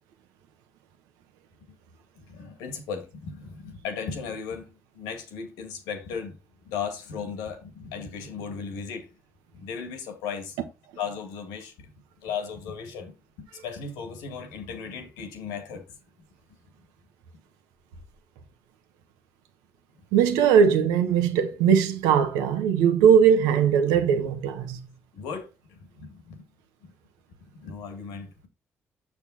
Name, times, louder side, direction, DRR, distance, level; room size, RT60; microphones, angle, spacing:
voice 1, 2.3-6.4 6.6-9.1 9.5-10.6 11.0-11.9 12.2-15.8 25.1-26.5 26.8-26.9 27.6-28.5, left 6 dB, 90° left, 1.9 m, -36 dB
voice 2, 20.1-24.8, right 7 dB, 85° right, 1.1 m, -20 dB
7.0 x 6.6 x 4.1 m
supercardioid pair, 55°, 6 cm